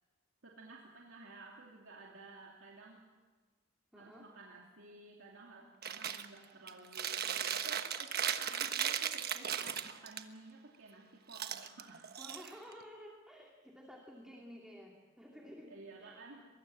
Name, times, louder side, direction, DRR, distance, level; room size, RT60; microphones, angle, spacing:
voice 1, 0.4-3.0 3.9-12.1 15.7-16.5, right 3 dB, 70° right, -1 dB, 2.9 m, -53 dB
voice 2, 3.9-4.3 12.2-15.7 16.0-16.4, equal, 5° right, -1 dB, 2.6 m, -53 dB
Chewing mastication, 5.8-6.3 6.7-10.2 11.3-12.8, right 8 dB, 50° right, 1.2 m, -37 dB
23.5 x 22.5 x 7.8 m, 1.3 s
head